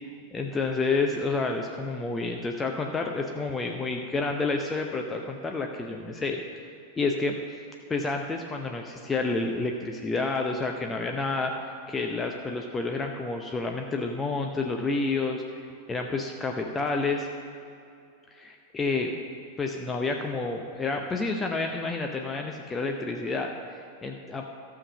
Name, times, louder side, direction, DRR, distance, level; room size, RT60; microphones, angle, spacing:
voice 1, 0.3-6.6 7.0-7.4 7.9-11.5 11.9-15.4 15.9-17.3 18.3-19.1 19.6-24.4, left 3 dB, 15° left, 2 dB, 0.7 m, -29 dB
13.5 x 6.0 x 6.4 m, 2.5 s
figure-of-eight pair, 90°, 0 cm